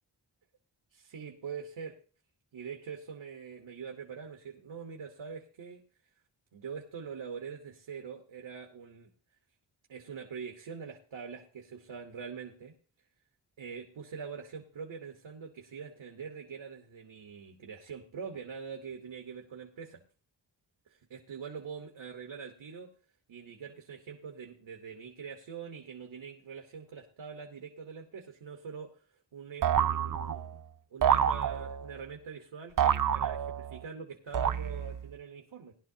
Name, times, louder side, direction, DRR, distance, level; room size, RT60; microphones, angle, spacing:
voice 1, 0.9-2.0 2.5-5.8 6.5-9.1 9.9-12.7 13.6-20.0 20.9-22.9 23.3-29.0 29.3-30.6 30.9-35.8, right 6 dB, 90° right, 3 dB, 1.2 m, -44 dB
sound 1, 29.6-30.6 31.0-32.0 32.8-33.8 34.3-35.1, right 8 dB, 50° right, 0.5 m, -28 dB
18.5 x 11.0 x 2.8 m, 0.39 s
cardioid pair, 60°, 44 cm